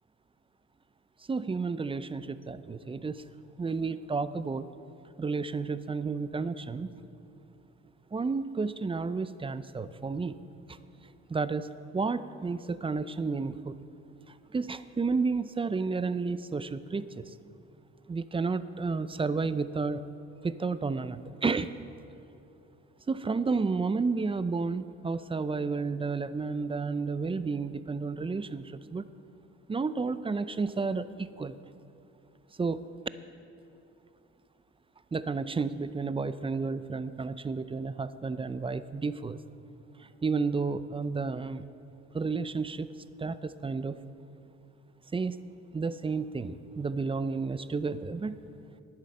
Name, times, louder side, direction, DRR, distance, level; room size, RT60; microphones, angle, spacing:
voice 1, 1.3-3.2 3.6-4.7 5.2-6.9 8.1-10.3 11.3-11.7 11.9-13.7 14.5-17.2 18.1-20.0 20.4-21.7 23.1-29.0 29.7-31.5 32.6-32.8 35.1-39.4 40.2-41.6 42.1-42.9 43.2-44.0 45.1-45.4 45.7-48.4, right 4 dB, 20° right, 14 dB, 0.4 m, -31 dB
10.5 x 9.4 x 6.7 m, 2.6 s
cardioid pair, 90°, 30 cm